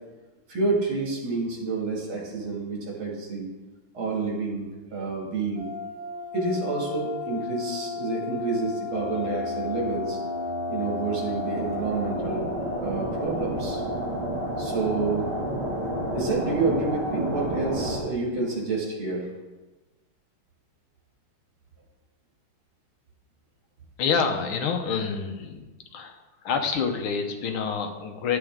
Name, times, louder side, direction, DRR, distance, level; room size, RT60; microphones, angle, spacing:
voice 1, 0.5-3.5 3.9-5.7 6.3-10.2 10.7-12.5 12.8-13.8 14.6-15.3 16.1-19.3, right 3 dB, 75° right, -2 dB, 2.9 m, -29 dB
sound 1, 5.5-18.0, left 1 dB, 20° right, 2.4 m, -31 dB
voice 2, 24.0-25.6 25.9-28.4, left 6 dB, 85° left, 6 dB, 1.8 m, -27 dB
10.5 x 8.1 x 3.7 m, 1.2 s
omnidirectional pair, 2.3 m